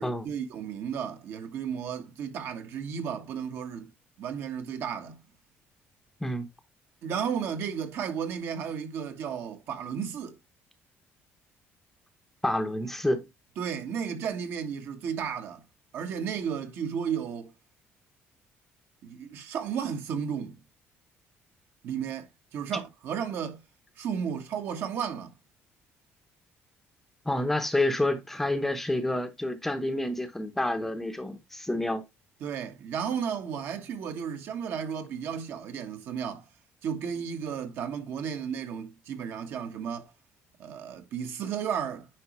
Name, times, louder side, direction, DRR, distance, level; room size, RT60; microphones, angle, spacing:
voice 1, 0.0-3.9 4.2-5.2 7.0-10.4 13.6-15.6 15.9-17.5 19.0-20.6 21.8-23.6 24.0-25.3 32.4-36.4 36.8-40.1 40.6-42.1, right 7 dB, 60° right, 1.6 m, -33 dB
voice 2, 12.4-13.2 27.2-32.0, left 1 dB, 5° left, 0.8 m, -28 dB
9.5 x 5.0 x 3.1 m
cardioid pair, 165°, 5 cm